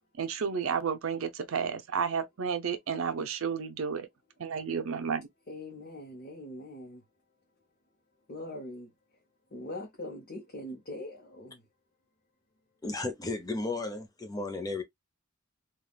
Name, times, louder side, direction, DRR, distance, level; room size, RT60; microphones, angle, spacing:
voice 1, 0.2-4.1 4.4-5.3, right 6 dB, 70° right, 0.6 m, -31 dB
voice 2, 5.5-7.0 8.3-8.9 9.5-11.6, left 1 dB, 45° left, 0.8 m, -42 dB
voice 3, 12.8-14.8, left 2 dB, 15° left, 0.6 m, -34 dB
3.5 x 2.3 x 2.3 m
head